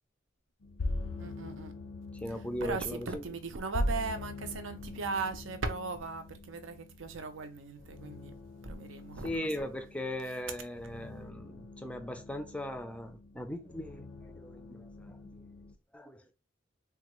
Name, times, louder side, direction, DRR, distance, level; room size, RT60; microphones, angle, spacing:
sound 1, 0.6-15.7, left 1 dB, 85° left, 0.5 m, -42 dB
voice 1, 1.2-1.7 2.6-8.3 8.6-9.5, right 4 dB, 80° right, 0.6 m, -38 dB
voice 2, 2.2-3.2 9.2-15.5 15.9-16.3, left 1 dB, 5° left, 0.4 m, -39 dB
3.5 x 2.3 x 3.0 m
head